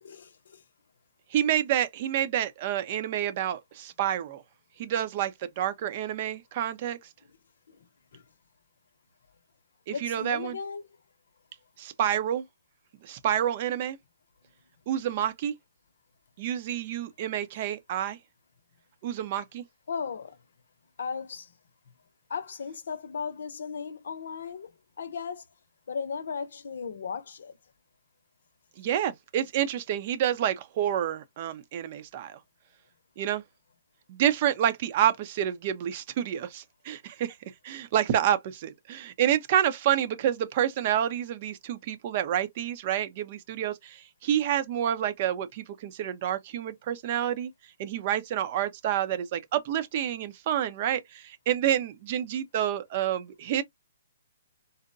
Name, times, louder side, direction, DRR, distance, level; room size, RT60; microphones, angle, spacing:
voice 1, 0.0-0.6 7.7-7.8 8.1-8.2 9.9-10.9 19.9-20.4 21.0-21.5 22.3-25.4 25.9-27.5, left 6 dB, 70° left, 0.7 m, -36 dB
voice 2, 1.3-4.4 4.8-7.0 9.9-10.6 11.8-12.4 13.0-14.0 14.9-15.5 16.4-18.2 19.0-19.6 28.8-32.4 33.2-33.4 34.1-37.4 37.6-47.5 47.8-53.6, right 10 dB, 45° right, 0.7 m, -28 dB
4.0 x 2.1 x 2.6 m
hypercardioid pair, 140°, 0 cm